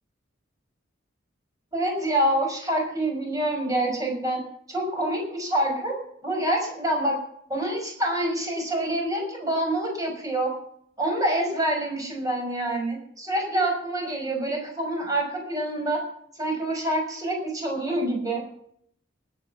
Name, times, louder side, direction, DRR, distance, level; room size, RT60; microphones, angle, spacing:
voice 1, 1.7-4.4 4.7-5.9 6.2-7.2 7.5-10.5 11.0-16.0 16.4-18.4, right 1 dB, 20° right, 1 dB, 6.1 m, -26 dB
19.5 x 9.2 x 5.9 m, 0.67 s
head